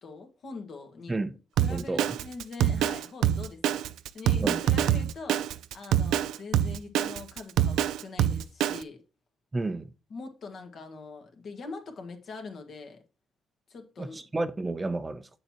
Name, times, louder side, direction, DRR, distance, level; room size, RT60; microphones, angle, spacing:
voice 1, 0.0-1.1 1.6-3.8 4.1-9.0 10.1-13.0 13.7-14.3, left 4 dB, 55° left, 1.6 m, -42 dB
Drum kit, 1.6-8.8, right 10 dB, 85° right, 0.3 m, -25 dB
voice 2, 1.7-2.1 4.4-4.6 9.5-9.9 14.0-15.3, right 2 dB, 20° right, 0.6 m, -31 dB
7.2 x 6.7 x 2.9 m
cardioid pair, 90°, 0 cm